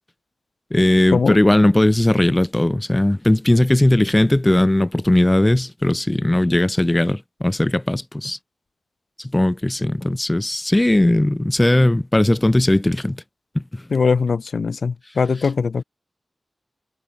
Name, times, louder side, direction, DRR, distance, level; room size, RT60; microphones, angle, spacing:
voice 1, 0.7-8.4 9.3-13.2 13.6-13.8, left 1 dB, 15° left, 2.2 m, -18 dB
voice 2, 13.9-15.8, left 5 dB, 75° left, 1.8 m, -20 dB
wide cardioid pair, 105°, 0 cm